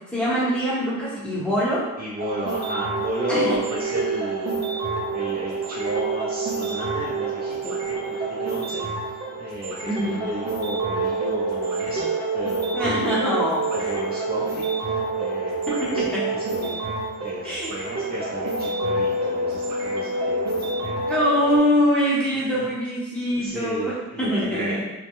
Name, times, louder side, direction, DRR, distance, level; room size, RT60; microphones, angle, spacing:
voice 1, 0.1-1.8 3.3-3.6 9.9-10.1 12.7-13.7 15.7-16.3 17.4-17.7 21.1-24.8, equal, 5° left, -8 dB, 0.9 m, -23 dB
voice 2, 2.0-4.5 4.8-8.8 9.4-13.1 13.7-16.8 17.2-21.0 22.5-22.6 23.3-24.7, equal, 30° right, -7 dB, 0.5 m, -33 dB
sound 1, 2.2-21.6, right 3 dB, 60° right, 0.8 m, -27 dB
2.2 x 2.1 x 2.9 m, 1.1 s
cardioid pair, 90°, 30 cm